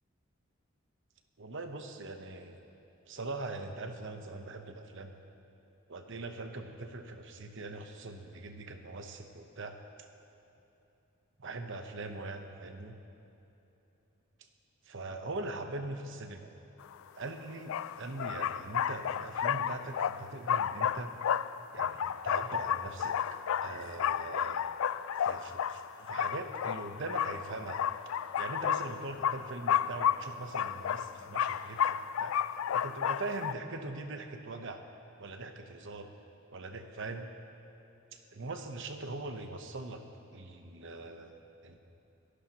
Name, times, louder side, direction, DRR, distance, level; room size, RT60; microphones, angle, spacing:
voice 1, 1.4-2.6 3.1-5.1 5.9-9.8 11.4-13.0 14.9-16.5 17.1-21.1 21.7-23.2 23.6-24.7 25.1-27.8 28.4-32.3 32.7-34.8 35.2-36.1 36.5-37.3 38.1-40.0 40.3-41.8, right 2 dB, 60° right, 6 dB, 1.0 m, -41 dB
sound 1, 16.9-17.0 17.7-33.5, left 9 dB, 70° left, 0.3 m, -32 dB
25.5 x 11.5 x 3.0 m, 3.0 s
head